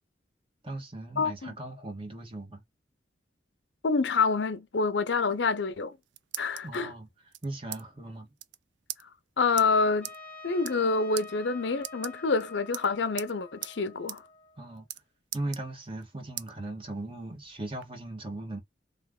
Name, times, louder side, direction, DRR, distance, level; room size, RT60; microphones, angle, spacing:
voice 1, 0.6-2.6 6.6-7.1 7.4-8.3 14.6-14.9 15.3-18.6, right 2 dB, 30° right, 1.4 m, -38 dB
voice 2, 1.2-1.5 3.8-6.0 6.4-6.9 9.0-9.1 9.4-10.1 10.4-14.2, left 4 dB, 75° left, 0.6 m, -27 dB
sound 1, 5.7-6.8 7.3-7.8 8.1-8.2 8.4-8.6 8.9-9.0 9.6-9.7 10.0-10.2 10.5-10.9 11.2-11.3 11.8-12.4 12.7-13.3 13.6-13.8 14.1-14.2 14.5-15.0 15.3-16.0 16.4-16.5 17.0-17.9, right 14 dB, 75° right, 0.4 m, -39 dB
Trumpet, 10.0-14.8, left 3 dB, 10° left, 0.9 m, -48 dB
3.5 x 3.2 x 3.6 m
head